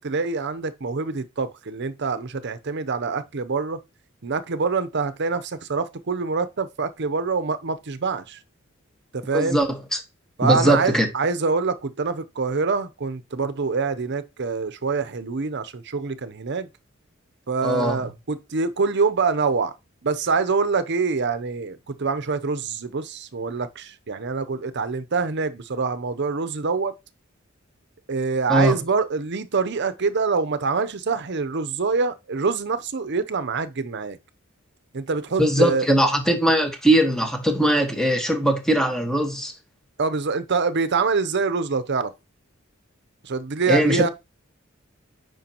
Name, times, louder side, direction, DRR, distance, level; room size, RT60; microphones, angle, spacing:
voice 1, 0.0-3.8 4.2-8.4 9.1-9.6 10.4-16.7 17.5-19.7 20.0-26.9 28.1-34.2 34.9-35.9 40.0-42.1 43.2-44.1, right 4 dB, 60° right, 0.7 m, -25 dB
voice 2, 9.3-9.7 10.4-11.1 17.6-18.1 28.5-28.7 35.4-39.5 43.7-44.1, right 1 dB, 5° left, 1.4 m, -20 dB
9.2 x 5.2 x 3.0 m
head